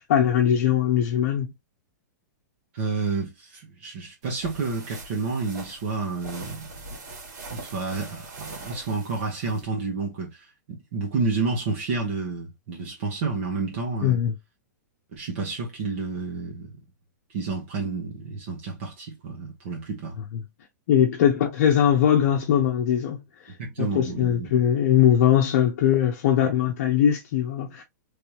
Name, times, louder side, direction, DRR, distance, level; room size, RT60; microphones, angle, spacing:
voice 1, 0.0-1.5 14.0-14.3 20.9-23.2 23.8-27.8, left 9 dB, 50° left, 0.8 m, -21 dB
voice 2, 2.7-6.7 7.5-14.2 15.1-16.7 17.3-20.2 23.6-24.5, right 4 dB, 45° right, 1.1 m, -30 dB
sound 1, 4.2-9.6, right 2 dB, 65° right, 2.1 m, -42 dB
3.4 x 3.3 x 2.9 m
supercardioid pair, 170°, 10 cm